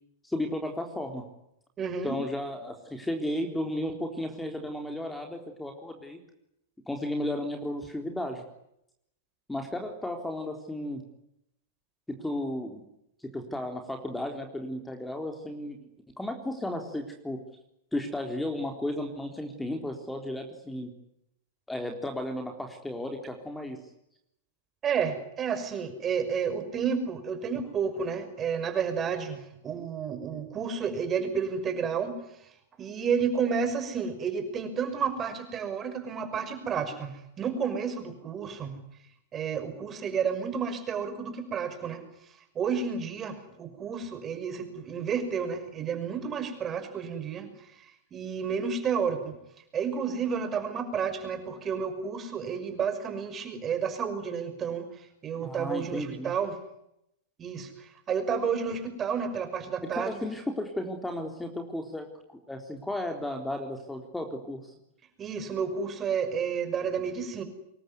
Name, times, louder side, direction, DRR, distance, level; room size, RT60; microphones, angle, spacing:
voice 1, 0.2-1.2 2.0-6.2 6.9-8.4 9.5-11.0 12.1-12.8 13.2-15.9 16.2-17.4 17.9-20.9 21.7-23.8 55.4-56.3 59.9-62.1 62.5-64.7, left 1 dB, 5° left, 4 dB, 3.9 m, -34 dB
voice 2, 1.8-2.2 24.8-32.2 32.8-38.8 39.3-42.0 42.5-47.5 48.1-49.4 49.7-56.6 57.4-60.1 65.2-67.4, right 6 dB, 25° right, 9 dB, 5.9 m, -31 dB
26.0 x 22.5 x 9.7 m, 0.81 s
figure-of-eight pair, 100°, 0 cm